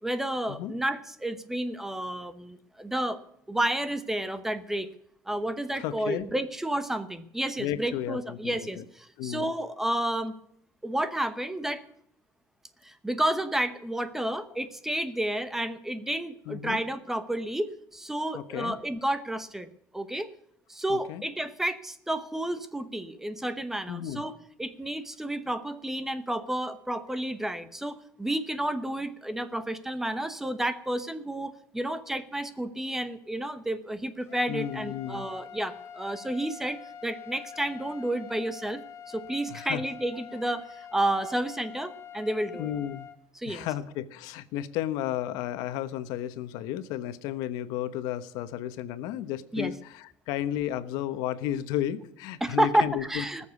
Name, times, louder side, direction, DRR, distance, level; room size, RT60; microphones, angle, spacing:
voice 1, 0.0-3.2 3.5-4.9 5.3-10.4 10.8-11.8 12.8-19.7 19.9-20.3 20.7-24.3 24.6-42.7 43.3-43.7 49.5-49.7 52.4-53.5, right 1 dB, 5° right, 12 dB, 1.0 m, -31 dB
voice 2, 5.7-6.3 7.6-8.8 9.2-9.5 16.5-16.8 18.3-18.8 20.9-21.2 23.9-24.2 34.5-35.3 39.5-39.8 42.6-43.1 43.5-53.2, left 11 dB, 90° left, 12 dB, 1.1 m, -33 dB
sound 1, 34.2-43.2, left 8 dB, 45° left, 1.7 m, -45 dB
19.5 x 7.2 x 8.3 m, 0.72 s
cardioid pair, 160°, 7 cm